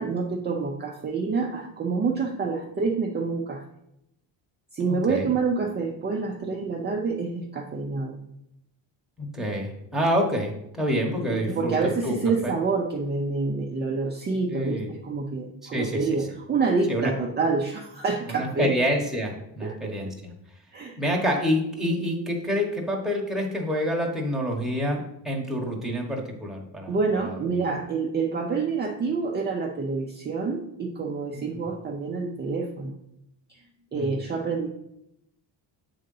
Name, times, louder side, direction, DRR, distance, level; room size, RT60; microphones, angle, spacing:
voice 1, 0.0-3.6 4.7-8.2 11.3-18.7 19.6-20.0 20.7-21.0 26.9-33.0 33.5-33.6 33.9-34.7, right 4 dB, 25° right, 0 dB, 0.5 m, -27 dB
voice 2, 4.9-5.3 9.2-11.8 12.0-12.2 12.4-12.5 14.5-14.9 15.7-16.1 16.9-17.1 18.3-20.3 21.0-27.0 27.2-27.6 31.3-31.6 33.9-34.1, equal, ahead, -1 dB, 1.0 m, -27 dB
7.8 x 3.8 x 5.4 m, 0.83 s
cardioid pair, 155°, 45 cm